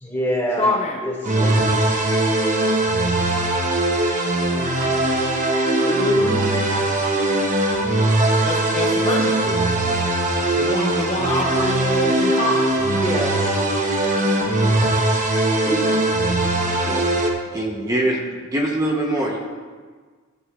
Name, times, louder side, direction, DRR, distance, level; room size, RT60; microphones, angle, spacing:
voice 1, 0.0-1.9 5.8-6.4 12.9-13.5 15.6-16.0, equal, 10° left, -4 dB, 2.1 m, -26 dB
voice 2, 0.6-1.0 8.4-9.4 10.5-12.8, left 2 dB, 30° left, -1 dB, 0.7 m, -25 dB
sound 1, 1.2-17.3, right 2 dB, 35° right, 1.1 m, -20 dB
voice 3, 16.7-17.0 17.5-19.4, right 1 dB, 15° right, -2 dB, 0.8 m, -24 dB
14.5 x 7.8 x 2.4 m, 1.5 s
head